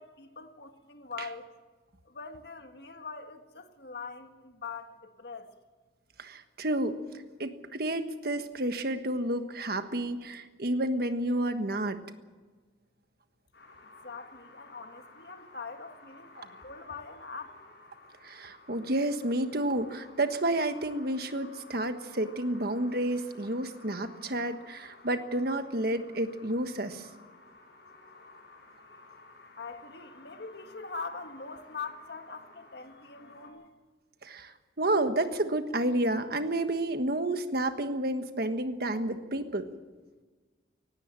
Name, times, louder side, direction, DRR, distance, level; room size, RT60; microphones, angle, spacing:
voice 1, 0.0-1.5 2.1-5.5 14.0-17.6 29.6-33.7, left 4 dB, 60° left, 1.8 m, -43 dB
voice 2, 6.2-7.0 7.4-12.0 18.2-27.1 34.2-39.6, right 1 dB, 55° right, 1.4 m, -30 dB
sound 1, 13.5-33.5, left 3 dB, 80° left, 7.1 m, -54 dB
18.5 x 16.5 x 9.0 m
head